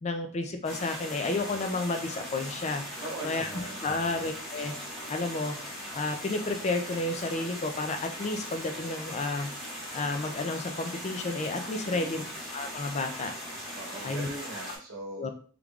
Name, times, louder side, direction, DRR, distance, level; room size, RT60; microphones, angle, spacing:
voice 1, 0.0-2.8 3.2-3.5 3.8-4.7 5.1-5.6 5.9-9.5 9.9-12.2 12.5-13.3 14.0-14.3 15.2-15.3, left 2 dB, 30° left, 6 dB, 0.4 m, -31 dB
sound 1, 0.6-14.8, equal, ahead, 1.3 m, -40 dB
voice 2, 3.0-4.0 11.8-12.2 13.7-15.3, right 2 dB, 70° right, -1 dB, 1.0 m, -41 dB
3.6 x 3.2 x 2.3 m, 0.43 s
head